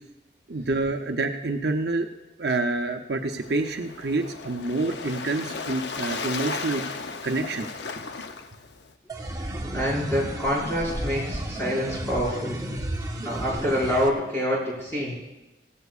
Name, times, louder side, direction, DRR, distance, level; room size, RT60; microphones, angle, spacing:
voice 1, 0.5-2.1 2.4-6.8 7.2-7.7, right 2 dB, 65° right, 5 dB, 0.7 m, -27 dB
Waves surf, 3.2-8.9, left 4 dB, 70° left, 0.7 m, -35 dB
sound 1, 9.1-14.1, right 1 dB, 20° right, 0.9 m, -33 dB
voice 2, 9.7-12.6 13.2-15.1, equal, 15° left, -8 dB, 5.5 m, -26 dB
17.0 x 15.0 x 2.5 m, 1.1 s
head